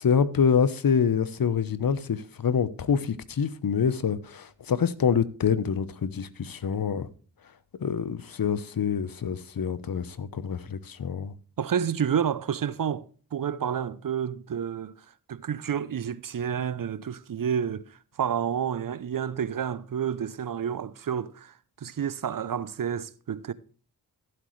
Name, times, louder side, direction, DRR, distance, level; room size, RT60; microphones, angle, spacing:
voice 1, 0.0-7.1 7.8-11.3, left 7 dB, 55° left, 1.0 m, -26 dB
voice 2, 11.6-13.1 13.3-14.9 15.3-17.9 18.2-21.5 21.8-23.5, right 8 dB, 55° right, 0.7 m, -29 dB
14.5 x 8.0 x 3.2 m
cardioid pair, 45°, 40 cm